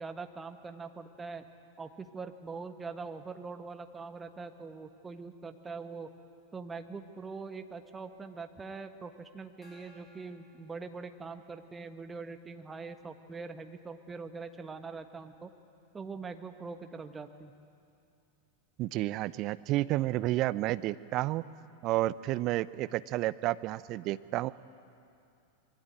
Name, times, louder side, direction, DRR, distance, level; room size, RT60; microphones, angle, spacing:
voice 1, 0.0-1.5 1.8-6.1 6.5-15.5 15.9-17.5, right 4 dB, 15° right, 8 dB, 1.5 m, -43 dB
Gong, 9.6-11.6, left 2 dB, 20° left, 5.3 m, -61 dB
voice 2, 18.8-21.4 21.8-24.5, right 16 dB, 40° right, 16 dB, 0.6 m, -31 dB
26.0 x 22.5 x 9.2 m, 2.5 s
figure-of-eight pair, 90°, 0 cm